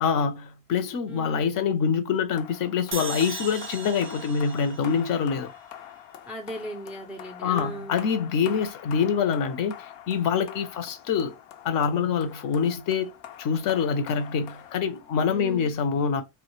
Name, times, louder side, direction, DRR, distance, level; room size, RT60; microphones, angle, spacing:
voice 1, 0.0-5.5 7.4-11.3 11.6-13.1 13.4-16.2, left 6 dB, 45° left, 0.6 m, -25 dB
voice 2, 1.1-1.5 6.3-8.0 15.3-15.7, right 1 dB, 5° right, 0.3 m, -38 dB
sound 1, 2.4-15.4, left 10 dB, 85° left, 0.7 m, -45 dB
sound 2, 2.9-6.1, right 4 dB, 25° right, 0.7 m, -38 dB
2.1 x 2.1 x 3.0 m
supercardioid pair, 95°, 48 cm